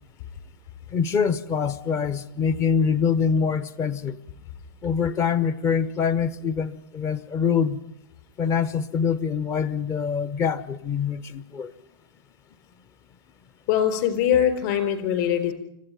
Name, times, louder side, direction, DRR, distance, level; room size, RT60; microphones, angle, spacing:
voice 1, 0.9-4.2 4.8-7.8 8.4-11.7, left 6 dB, 20° left, 0.8 m, -24 dB
voice 2, 13.7-15.5, left 9 dB, 45° left, 4.5 m, -22 dB
25.5 x 15.0 x 9.2 m
supercardioid pair, 160°, 13 cm